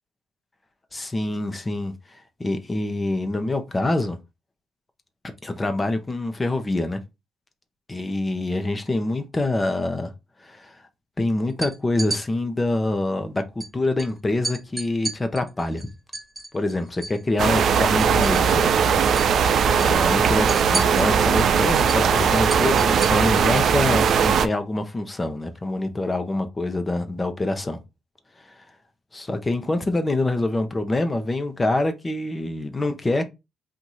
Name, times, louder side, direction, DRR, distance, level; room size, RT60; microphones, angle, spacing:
voice 1, 0.9-4.2 5.4-7.0 7.9-10.1 10.4-10.8 11.2-15.9 16.5-18.7 19.7-27.8 29.1-33.2, left 2 dB, 20° left, 0.9 m, -25 dB
sound 1, 11.5-12.2 13.6-13.7 14.0-14.1 14.4-17.2 17.5-18.7 19.0-19.3 19.6-23.7, right 2 dB, 15° right, 1.6 m, -33 dB
sound 2, 17.4-24.5, right 7 dB, 60° right, 0.5 m, -19 dB
4.1 x 2.7 x 4.7 m
cardioid pair, 90°, 0 cm